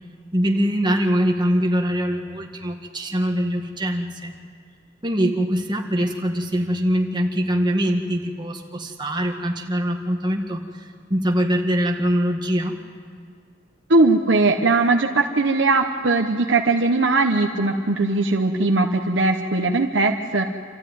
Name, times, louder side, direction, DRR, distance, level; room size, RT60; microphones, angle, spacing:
voice 1, 0.3-4.3 5.0-10.6 11.1-12.8, equal, 25° right, 2 dB, 1.7 m, -23 dB
voice 2, 13.9-20.5, right 3 dB, 70° right, 3 dB, 1.0 m, -19 dB
27.0 x 14.0 x 9.3 m, 2.2 s
head